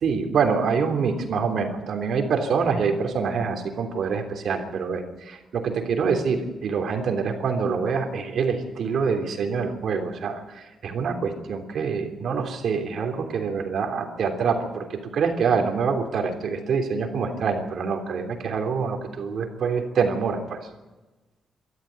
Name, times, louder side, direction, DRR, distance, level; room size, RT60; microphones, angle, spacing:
voice 1, 0.0-20.6, right 5 dB, 65° right, 5 dB, 3.3 m, -26 dB
24.5 x 13.5 x 9.5 m, 1.1 s
wide cardioid pair, 165°, 0 cm